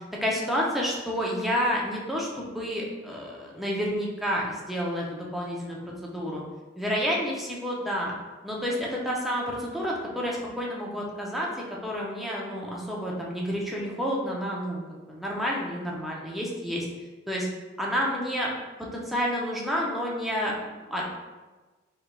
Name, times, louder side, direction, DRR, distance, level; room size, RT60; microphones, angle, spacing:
voice 1, 0.0-6.4 6.8-8.1 8.4-11.5 11.8-16.9 17.3-17.5 17.8-18.5 18.9-20.6 20.9-21.0, equal, ahead, -4 dB, 0.5 m, -29 dB
3.5 x 3.3 x 2.2 m, 1.2 s
head